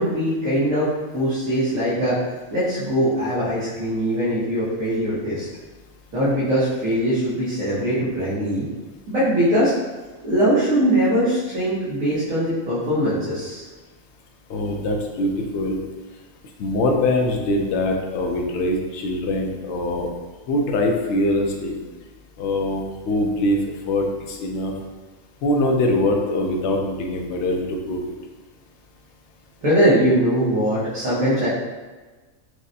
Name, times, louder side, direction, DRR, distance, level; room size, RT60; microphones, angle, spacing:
voice 1, 0.0-2.2 2.5-5.4 6.1-8.6 9.1-9.7 10.2-13.7 29.6-31.5, equal, 75° right, -12 dB, 1.6 m, -21 dB
voice 2, 14.5-15.8 16.6-20.1 20.5-21.8 22.4-24.7 25.4-28.1, left 1 dB, 65° left, 1 dB, 0.8 m, -23 dB
6.3 x 2.1 x 2.7 m, 1.3 s
omnidirectional pair, 1.4 m